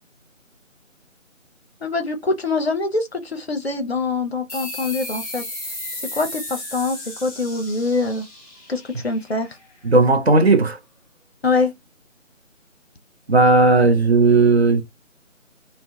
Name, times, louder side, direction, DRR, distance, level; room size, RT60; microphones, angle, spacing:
voice 1, 1.8-5.4 6.1-8.3 8.7-9.5 11.4-11.7, left 3 dB, 50° left, 0.6 m, -24 dB
sound 1, 4.5-9.7, left 1 dB, 25° left, 0.9 m, -34 dB
voice 2, 9.8-10.8 13.3-14.8, right 3 dB, 55° right, 0.6 m, -15 dB
2.2 x 2.1 x 2.6 m
figure-of-eight pair, 155°, 39 cm